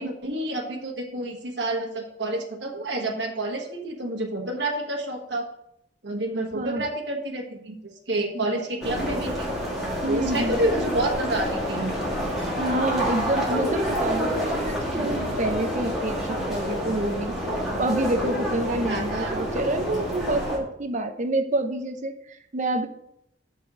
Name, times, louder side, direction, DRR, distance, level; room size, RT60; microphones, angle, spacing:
voice 1, 0.0-5.5 6.0-7.8 8.1-9.5 10.1-11.9 18.9-19.4, right 1 dB, 70° right, 1 dB, 1.4 m, -29 dB
voice 2, 6.5-6.8 8.3-8.5 10.0-10.6 12.6-17.4 17.8-22.9, right 1 dB, 45° right, 7 dB, 0.7 m, -28 dB
sound 1, 8.8-20.6, equal, ahead, 2.3 m, -28 dB
6.5 x 4.5 x 6.0 m, 0.77 s
head